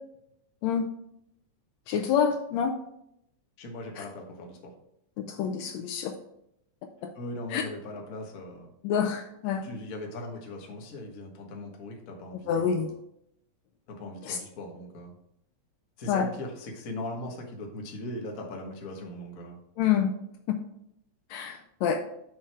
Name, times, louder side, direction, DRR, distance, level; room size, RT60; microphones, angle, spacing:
voice 1, 1.9-2.7 4.0-4.1 5.3-6.1 7.0-7.1 7.5-7.6 8.8-9.7 12.5-12.9 14.3-14.4 16.1-16.3 19.8-20.1 21.3-22.0, left 7 dB, 75° left, 5 dB, 1.8 m, -27 dB
voice 2, 3.6-4.7 7.1-8.7 9.6-12.9 13.9-15.1 16.0-19.6, left 1 dB, 45° left, 1 dB, 1.1 m, -39 dB
6.6 x 5.9 x 4.7 m, 0.77 s
omnidirectional pair, 3.4 m